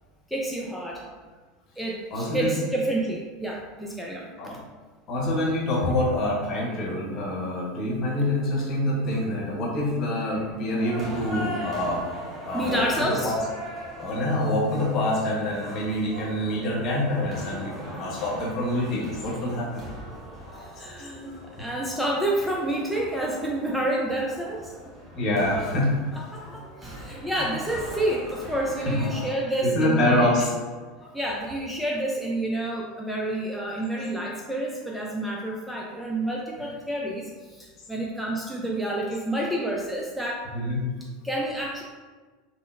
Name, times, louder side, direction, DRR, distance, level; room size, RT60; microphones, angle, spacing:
voice 1, 0.3-1.0 1.8-4.6 12.5-13.3 20.5-24.7 25.5-25.7 26.1-30.3 31.1-40.5 41.2-41.8, right 1 dB, ahead, -3 dB, 0.4 m, -29 dB
voice 2, 2.1-2.5 4.4-4.6 5.1-12.0 12.4-13.4 14.0-19.8 20.6-20.9 21.6-21.7 25.1-26.0 26.3-27.0 27.4-27.5 28.8-29.1 29.6-30.5 31.0-31.1 40.5-40.9, left 1 dB, 45° left, -4 dB, 0.9 m, -26 dB
sound 1, 10.8-29.4, equal, 20° right, 1.1 m, -40 dB
3.6 x 2.0 x 2.4 m, 1.4 s
figure-of-eight pair, 80°, 0 cm